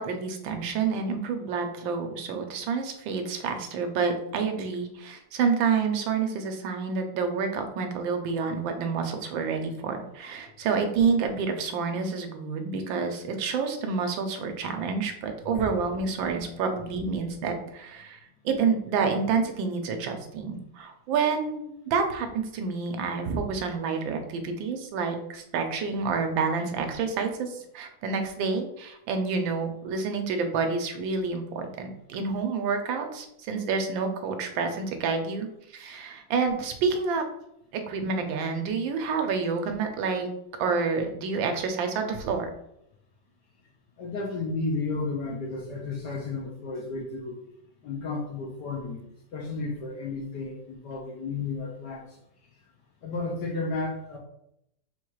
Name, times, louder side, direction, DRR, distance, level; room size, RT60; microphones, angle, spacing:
voice 1, 0.0-35.5 35.7-37.3 37.7-40.3 40.6-42.5, right 5 dB, 85° right, 5 dB, 1.4 m, -28 dB
voice 2, 44.0-47.4 47.8-49.0 49.3-52.0 53.0-54.2, left 3 dB, 70° left, -2 dB, 1.2 m, -32 dB
4.3 x 2.3 x 4.5 m, 0.79 s
omnidirectional pair, 2.1 m